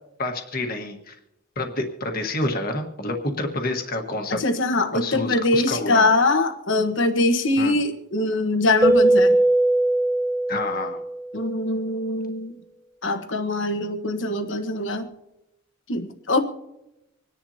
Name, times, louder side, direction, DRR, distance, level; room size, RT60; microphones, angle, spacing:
voice 1, 0.2-1.1 1.6-4.4 4.9-6.1 7.6-7.8 10.5-11.0, left 2 dB, 45° left, 4 dB, 1.6 m, -28 dB
voice 2, 4.4-9.4 11.3-12.5 13.0-15.1 15.9-16.4, left 2 dB, 60° left, 5 dB, 1.3 m, -22 dB
Keyboard (musical), 8.8-11.3, right 1 dB, 15° right, 0.6 m, -19 dB
26.5 x 10.5 x 2.9 m, 0.89 s
head